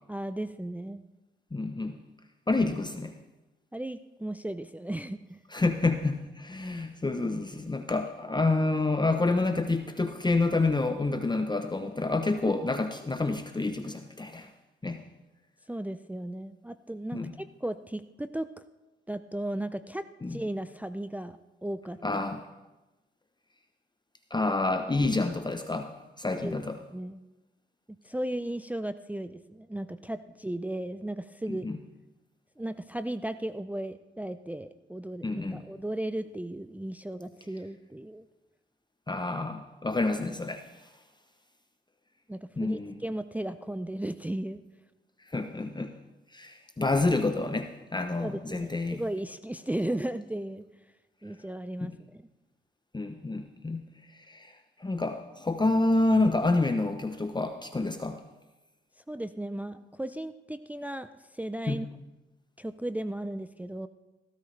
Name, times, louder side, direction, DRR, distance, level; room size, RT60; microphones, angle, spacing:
voice 1, 0.1-1.0 3.7-5.4 15.7-18.6 19.1-20.0 20.3-22.2 26.4-26.6 26.9-27.2 28.0-31.7 32.6-38.2 42.3-44.6 48.2-50.6 51.2-52.2 59.1-61.9 62.6-63.9, right 1 dB, 5° right, 10 dB, 0.5 m, -35 dB
voice 2, 1.5-2.0 2.5-3.1 5.5-14.5 14.8-15.0 17.1-17.3 20.2-20.4 22.0-22.5 24.3-26.8 31.5-31.8 35.2-35.6 39.1-40.9 42.6-43.0 45.3-46.0 46.3-49.0 51.8-51.9 52.9-53.8 54.1-58.2 61.7-61.8, left 2 dB, 20° left, 7 dB, 0.8 m, -28 dB
16.0 x 12.5 x 3.3 m, 1.1 s
supercardioid pair, 55°, 21 cm